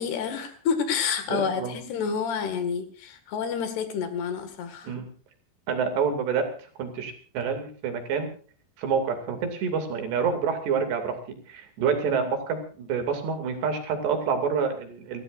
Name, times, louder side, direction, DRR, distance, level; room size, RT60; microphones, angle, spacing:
voice 1, 0.0-4.9, left 6 dB, 75° left, 8 dB, 4.1 m, -29 dB
voice 2, 1.3-1.8 4.8-5.1 5.7-6.5 6.8-8.3 8.8-11.2 11.5-15.2, right 6 dB, 85° right, 5 dB, 4.8 m, -27 dB
29.5 x 14.5 x 2.6 m, 0.43 s
omnidirectional pair, 4.7 m